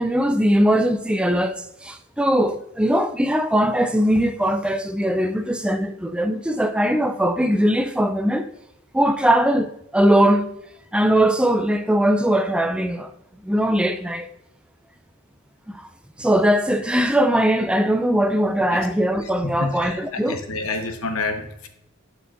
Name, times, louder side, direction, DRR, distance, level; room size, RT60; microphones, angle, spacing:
voice 1, 0.0-8.5 8.9-10.5 10.9-13.1 13.4-14.3 15.7-15.8 16.2-20.4, right 1 dB, 5° right, 0.3 m, -20 dB
voice 2, 19.2-21.7, left 3 dB, 85° left, 0.9 m, -29 dB
11.0 x 5.0 x 2.5 m
head